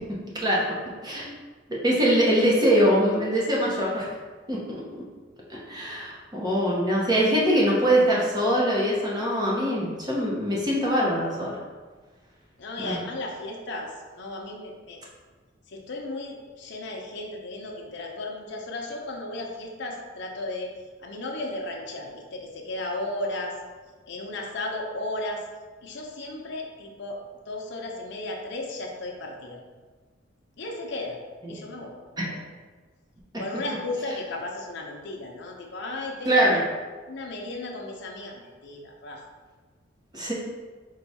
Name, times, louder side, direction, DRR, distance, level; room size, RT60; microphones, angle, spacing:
voice 1, 1.7-4.1 4.5-4.8 5.5-11.6 12.8-13.0 31.4-31.6 32.2-32.3 36.2-36.6 40.1-40.3, equal, 20° right, -5 dB, 0.8 m, -23 dB
voice 2, 12.6-15.0 15.7-20.7 21.0-23.6 24.1-25.4 25.8-27.2 27.5-29.6 30.6-31.2 31.5-32.4 33.4-36.6 37.1-39.2, left 2 dB, 60° left, 0 dB, 0.7 m, -35 dB
4.7 x 2.3 x 4.1 m, 1.4 s
head